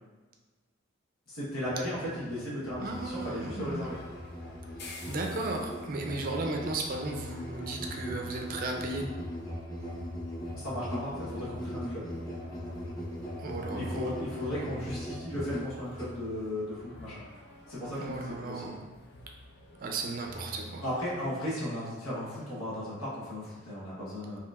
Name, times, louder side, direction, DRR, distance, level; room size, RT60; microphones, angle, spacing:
voice 1, 1.3-4.0 10.5-12.1 13.7-17.2 17.7-18.8 20.8-24.4, left 1 dB, 80° left, -8 dB, 1.2 m, -36 dB
Musical instrument, 1.6-16.2, equal, 20° left, 1.0 m, -40 dB
sound 1, 2.8-21.3, left 1 dB, 50° left, 0.5 m, -49 dB
voice 2, 2.8-3.9 4.8-9.0 13.4-14.1 18.0-18.8 19.8-20.8, right 2 dB, 40° right, 1 dB, 0.5 m, -35 dB
4.5 x 2.9 x 2.4 m, 1.3 s
head